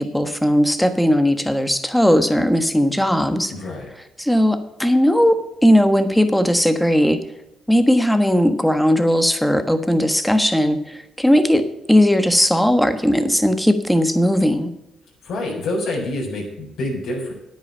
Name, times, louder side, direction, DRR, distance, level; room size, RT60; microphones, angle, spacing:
voice 1, 0.0-3.5 4.2-7.2 7.7-14.7, equal, 5° left, 9 dB, 1.3 m, -17 dB
voice 2, 3.5-3.9 15.2-17.3, left 1 dB, 75° left, -3 dB, 4.4 m, -27 dB
9.6 x 8.9 x 5.6 m, 0.88 s
cardioid pair, 90°, 0 cm